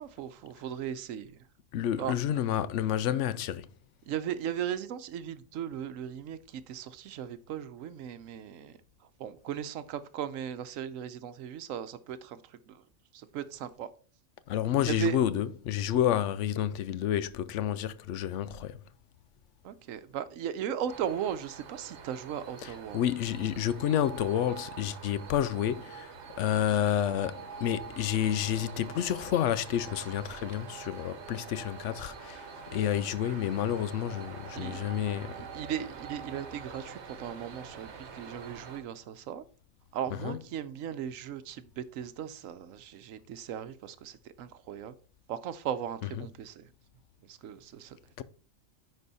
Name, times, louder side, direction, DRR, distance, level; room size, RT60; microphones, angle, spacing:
voice 1, 0.0-1.3 2.0-2.1 4.1-8.8 9.2-12.8 13.1-13.9 14.8-15.2 19.6-23.0 34.5-39.4 39.9-44.9 45.3-46.7 47.3-48.0, right 9 dB, 80° right, 1.0 m, -37 dB
voice 2, 1.7-3.7 14.5-18.8 22.6-26.1 26.4-32.4 32.7-35.4 40.2-40.4 48.2-48.3, left 10 dB, 70° left, 0.8 m, -29 dB
sound 1, 20.9-38.8, right 6 dB, 60° right, 1.2 m, -45 dB
9.9 x 4.3 x 4.0 m
omnidirectional pair, 1.4 m